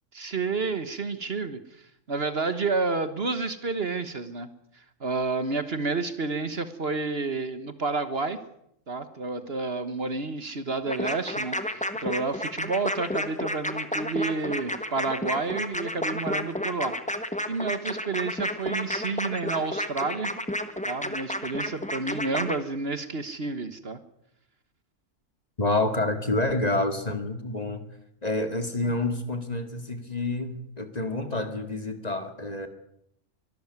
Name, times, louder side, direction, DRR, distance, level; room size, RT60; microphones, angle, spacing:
voice 1, 0.1-4.5 4.7-8.4 8.9-16.9 17.5-20.3 20.8-24.0, right 3 dB, 50° right, 11 dB, 1.6 m, -30 dB
sound 1, 10.9-22.6, left 1 dB, 5° left, 1.4 m, -31 dB
voice 2, 25.6-27.8 28.2-32.7, left 2 dB, 30° left, 8 dB, 2.2 m, -28 dB
23.5 x 13.5 x 9.4 m, 0.73 s
omnidirectional pair, 1.3 m